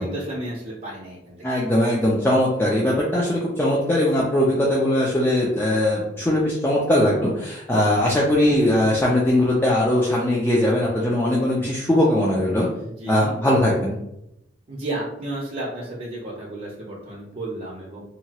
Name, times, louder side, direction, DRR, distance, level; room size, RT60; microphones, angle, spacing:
voice 1, 0.0-1.6 12.8-13.3 14.7-18.0, right 1 dB, 40° right, -4 dB, 0.5 m, -33 dB
voice 2, 1.4-12.7 13.1-13.9, left 1 dB, 10° left, -5 dB, 0.4 m, -20 dB
2.8 x 2.3 x 2.8 m, 0.85 s
head